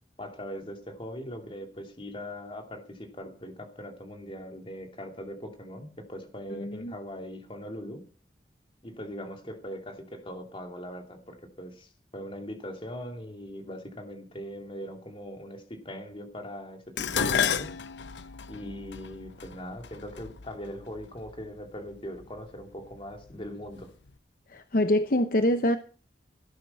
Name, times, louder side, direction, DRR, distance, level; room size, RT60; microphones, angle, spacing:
voice 1, 0.2-8.0 8.8-17.7 18.5-23.9, equal, 30° left, 2.8 m, -40 dB
voice 2, 6.5-6.9 24.5-25.8, left 1 dB, 50° left, 0.9 m, -25 dB
Dishes pots and pans, 17.0-21.3 22.2-22.6 23.0-23.8 24.1-24.2, left 7 dB, 90° left, 0.8 m, -32 dB
18.0 x 10.5 x 5.5 m
head